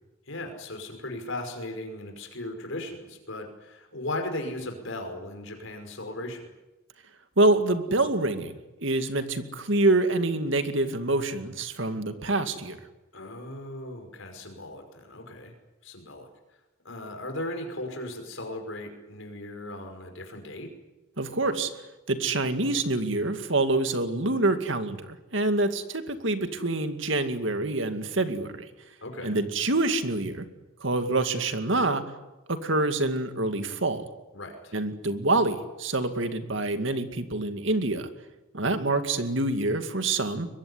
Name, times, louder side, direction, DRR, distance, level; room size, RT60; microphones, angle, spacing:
voice 1, 0.3-6.5 13.1-15.5 15.8-16.3 16.8-20.7 29.0-29.4 34.3-34.8, left 1 dB, 70° left, 4 dB, 5.4 m, -37 dB
voice 2, 7.4-12.8 21.2-21.7 22.1-28.6 29.2-30.4 30.8-32.0 32.5-34.0 34.7-38.1 38.5-40.5, right 2 dB, 60° right, 8 dB, 2.3 m, -26 dB
23.0 x 22.0 x 9.9 m, 1.1 s
head